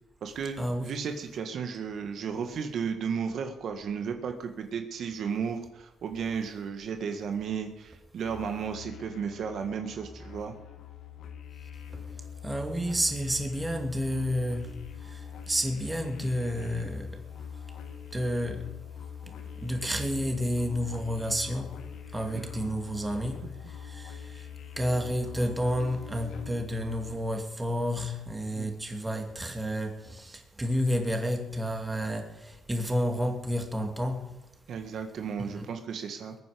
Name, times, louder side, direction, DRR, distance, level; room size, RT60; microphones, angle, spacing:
voice 1, 0.2-10.6 22.3-22.7 28.5-28.7 34.7-36.4, right 6 dB, 65° right, 1.8 m, -34 dB
sound 1, 8.2-27.2, left 7 dB, 75° left, 2.0 m, -43 dB
voice 2, 12.4-17.2 18.1-18.7 19.3-21.7 22.1-24.5 24.8-34.4 35.4-35.7, equal, 15° right, 2.6 m, -31 dB
21.5 x 9.5 x 5.2 m
cardioid pair, 90°, 0 cm